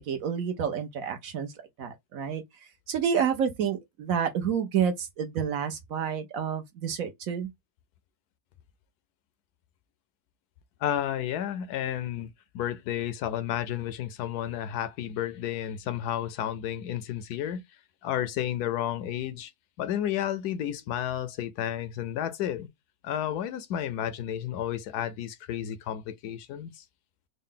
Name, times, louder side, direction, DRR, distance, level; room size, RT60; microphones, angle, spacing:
voice 1, 0.0-1.5 1.8-2.4 2.9-7.5, right 7 dB, 65° right, 1.1 m, -29 dB
voice 2, 10.8-12.3 12.5-17.6 18.0-19.5 19.8-22.7 23.0-26.8, left 11 dB, 80° left, 1.1 m, -31 dB
3.7 x 2.2 x 3.7 m
omnidirectional pair, 1.7 m